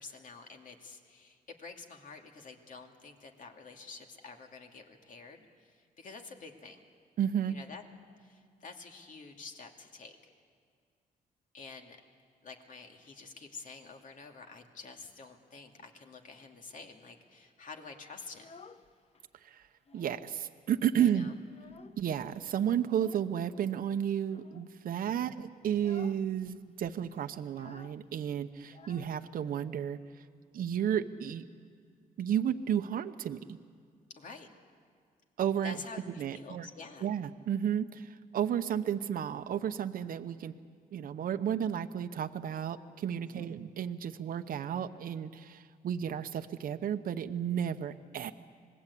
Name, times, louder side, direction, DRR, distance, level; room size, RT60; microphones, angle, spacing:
voice 1, 0.0-6.8 7.4-7.8 8.2-10.3 11.5-12.0 12.4-18.4 21.0-21.3 24.9-25.3 34.2-34.5 35.6-37.1 43.2-43.5, left 4 dB, 55° left, 3 dB, 2.6 m, -49 dB
voice 2, 7.2-7.5 19.4-19.7 19.9-21.3 22.0-30.0 30.5-31.4 32.2-33.6 35.4-35.8 36.2-36.7 37.0-40.5 40.9-48.3, right 9 dB, 65° right, 8 dB, 0.9 m, -32 dB
Child speech kid speaking, 18.3-19.3 19.6-20.4 20.7-20.8 21.1-22.2 22.9-23.3 24.2-24.7 25.1-25.3 25.7-26.3 26.5-26.6 26.8-29.6, left 4 dB, 40° left, 1.0 m, -55 dB
26.5 x 20.0 x 8.5 m, 2.1 s
cardioid pair, 95°, 16 cm